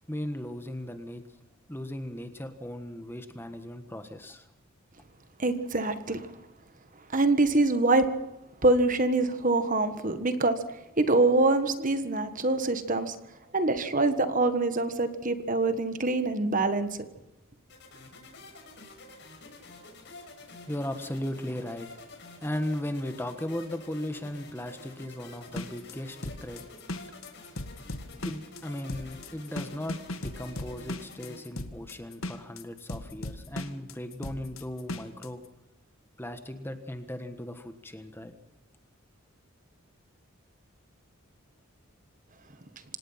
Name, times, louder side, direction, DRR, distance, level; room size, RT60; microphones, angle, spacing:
voice 1, 0.1-1.2 1.7-4.5 20.7-21.9 22.4-26.6 28.2-35.4 36.2-38.3, left 1 dB, 10° left, 8 dB, 1.4 m, -37 dB
voice 2, 5.4-6.3 7.1-8.1 8.6-10.6 11.0-13.1 13.5-16.9, right 2 dB, 35° right, 10 dB, 1.5 m, -25 dB
sound 1, 17.7-31.4, left 2 dB, 55° left, 6.0 m, -49 dB
sound 2, 25.5-35.3, left 2 dB, 70° left, 1.7 m, -38 dB
26.5 x 18.0 x 5.8 m, 0.95 s
head